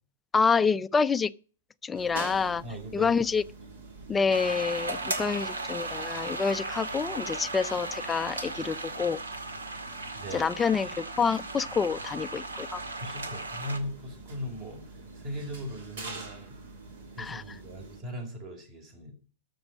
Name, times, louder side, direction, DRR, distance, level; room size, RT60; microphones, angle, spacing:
voice 1, 0.3-1.3 1.8-2.6 2.9-3.4 4.1-9.2 10.3-12.8 17.2-17.4, left 5 dB, 15° left, 0.4 m, -27 dB
sound 1, 1.9-18.0, right 3 dB, 60° right, 2.6 m, -46 dB
voice 2, 2.6-3.2 10.1-10.5 13.0-16.6 17.1-19.1, equal, 35° right, 5.1 m, -39 dB
sound 2, 4.3-13.8, right 2 dB, 80° right, 2.0 m, -36 dB
13.0 x 6.3 x 6.3 m
figure-of-eight pair, 110°, 0 cm